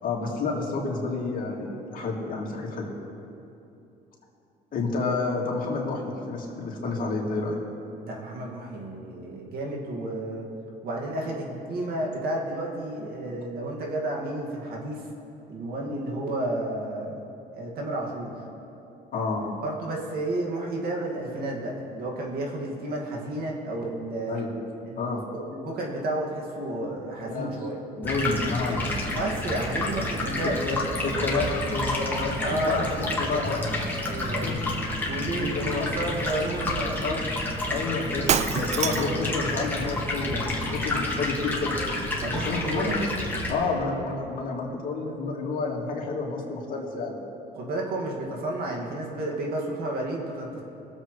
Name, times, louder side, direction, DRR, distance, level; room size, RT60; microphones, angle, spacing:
voice 1, 0.0-2.9 4.7-7.6 15.8-15.9 19.1-19.5 24.3-24.5 25.0-25.2 27.3-27.5 28.0-29.2 30.4-33.7 34.4-34.6 35.4-35.9 37.0-37.2 37.7-41.8 42.3-43.0 43.5-47.2, left 3 dB, 55° left, -3 dB, 2.4 m, -29 dB
voice 2, 8.0-10.5 10.8-15.1 15.5-17.2 17.5-18.3 19.6-24.4 24.9-27.8 29.1-30.6 32.4-33.5 34.0-34.6 35.1-37.2 37.8-37.9 42.2-43.0 47.5-50.6, right 1 dB, 65° right, -1 dB, 2.1 m, -31 dB
Stream, 28.0-43.5, left 1 dB, 10° left, 2.0 m, -30 dB
Shatter, 38.3-39.3, right 9 dB, 40° right, 0.4 m, -26 dB
21.5 x 7.7 x 3.2 m, 2.8 s
cardioid pair, 110°, 17 cm